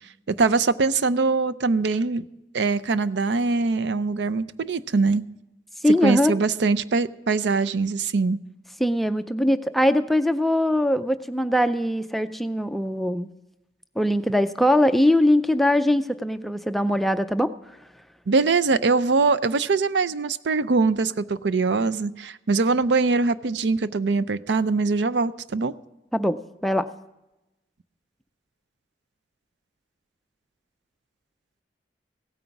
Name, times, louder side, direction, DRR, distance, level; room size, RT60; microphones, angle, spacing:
voice 1, 0.3-2.2 2.5-5.2 6.0-8.4 18.3-25.7, right 4 dB, 70° right, 15 dB, 0.5 m, -22 dB
voice 2, 5.8-6.3 8.8-13.3 14.0-17.5 26.1-26.4 26.6-26.9, left 1 dB, ahead, 9 dB, 0.4 m, -21 dB
16.5 x 9.2 x 5.9 m, 0.95 s
head